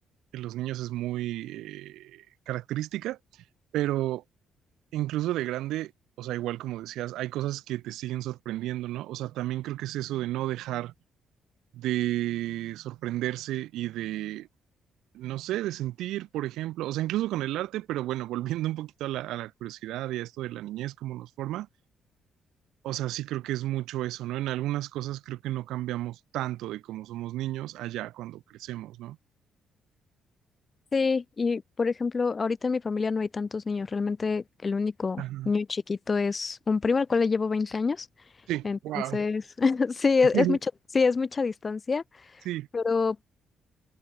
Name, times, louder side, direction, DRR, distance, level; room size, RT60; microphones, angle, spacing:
voice 1, 0.3-3.2 3.7-4.2 4.9-5.9 6.2-10.9 11.7-14.5 15.1-21.7 22.8-29.2 35.2-35.5 38.5-39.2 40.3-40.6 42.4-42.7, right 15 dB, 90° right, 4.6 m, -32 dB
voice 2, 30.9-38.1 38.6-38.8 39.1-40.6 40.9-42.0 42.7-43.2, left 4 dB, 35° left, 2.8 m, -26 dB
cardioid pair, 90°, 0 cm